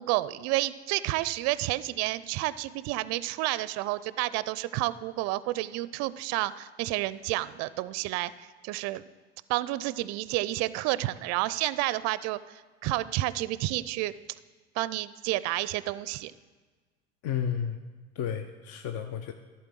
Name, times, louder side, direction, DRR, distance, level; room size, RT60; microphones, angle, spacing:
voice 1, 0.0-9.0 9.5-14.1 14.8-16.3, right 17 dB, 50° right, 17 dB, 0.4 m, -30 dB
voice 2, 17.2-17.8 18.2-19.3, left 8 dB, 45° left, 8 dB, 0.6 m, -32 dB
12.0 x 4.4 x 7.4 m, 1.4 s
hypercardioid pair, 75°, 33 cm